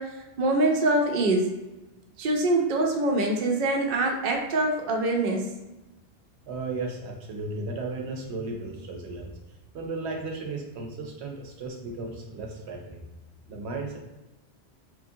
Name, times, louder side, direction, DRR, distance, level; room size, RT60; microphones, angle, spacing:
voice 1, 0.0-1.5 2.2-5.5, right 2 dB, 60° right, 1 dB, 0.6 m, -24 dB
voice 2, 6.5-9.3 9.7-13.0 13.5-14.0, right 3 dB, 85° right, 1 dB, 0.9 m, -35 dB
3.0 x 2.4 x 2.6 m, 1.0 s
omnidirectional pair, 1.1 m